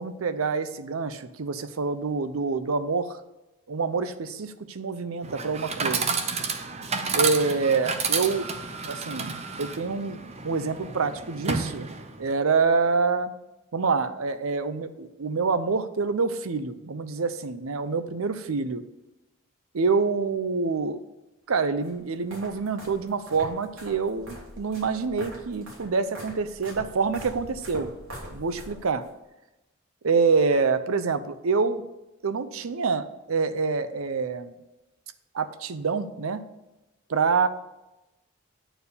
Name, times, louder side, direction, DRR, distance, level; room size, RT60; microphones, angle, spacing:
voice 1, 0.0-3.2 3.7-6.2 7.1-8.5 8.8-9.3 9.6-11.9 12.2-13.3 13.7-18.8 19.7-21.0 21.5-27.9 28.3-29.0 30.0-31.8 32.2-34.5 35.3-36.4 37.1-37.5, right 4 dB, 85° right, 12 dB, 0.6 m, -26 dB
Chatter / Coin (dropping), 5.2-12.3, right 5 dB, 30° right, 0.7 m, -30 dB
sound 1, 21.8-29.1, equal, 65° right, 3.0 m, -43 dB
8.9 x 4.6 x 6.8 m, 0.99 s
head